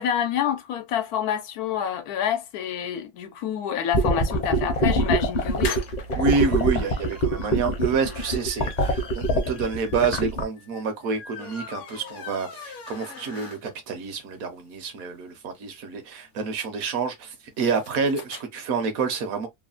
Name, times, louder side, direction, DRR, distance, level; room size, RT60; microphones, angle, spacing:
voice 1, 0.0-5.7, left 9 dB, 90° left, 1.1 m, -27 dB
sound 1, 3.9-10.4, right 1 dB, 40° left, 0.6 m, -23 dB
sound 2, 5.4-14.0 14.4-14.5 14.7-14.8 15.0-18.4, left 6 dB, 60° left, 1.0 m, -41 dB
voice 2, 6.1-19.5, right 5 dB, 70° right, 1.2 m, -28 dB
3.2 x 2.1 x 2.4 m
omnidirectional pair, 1.6 m